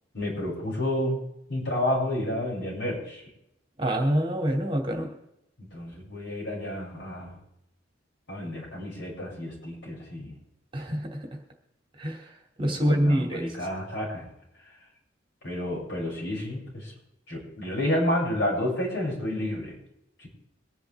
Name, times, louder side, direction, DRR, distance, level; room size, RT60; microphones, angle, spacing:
voice 1, 0.1-1.2 1.5-3.2 5.6-7.4 8.3-10.3 12.6-14.3 15.4-16.9 17.3-19.8 20.2-20.3, left 1 dB, 65° left, -4 dB, 6.7 m, -30 dB
voice 2, 3.8-5.1 10.7-11.3 12.0-12.3 12.6-13.5, equal, 25° right, 2 dB, 2.5 m, -26 dB
24.0 x 10.0 x 3.5 m, 0.82 s
head